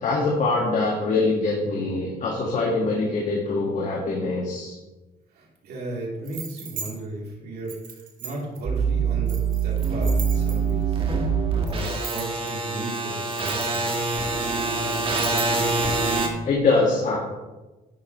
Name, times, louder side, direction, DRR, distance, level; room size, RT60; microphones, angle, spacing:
voice 1, 0.0-4.7 16.4-17.2, left 3 dB, 50° left, -2 dB, 2.0 m, -23 dB
voice 2, 5.3-7.8 8.2-11.0 11.5-13.8, right 2 dB, 70° right, -3 dB, 3.4 m, -35 dB
sound 1, 6.2-6.9 7.7-8.6 9.3-10.8 11.7-12.5 13.1-14.2 14.9-15.7, right 5 dB, 50° right, 2.5 m, -37 dB
sound 2, 8.6-16.3, right 4 dB, 30° right, 1.8 m, -24 dB
12.0 x 8.9 x 3.2 m, 1.1 s
cardioid pair, 110°, 17 cm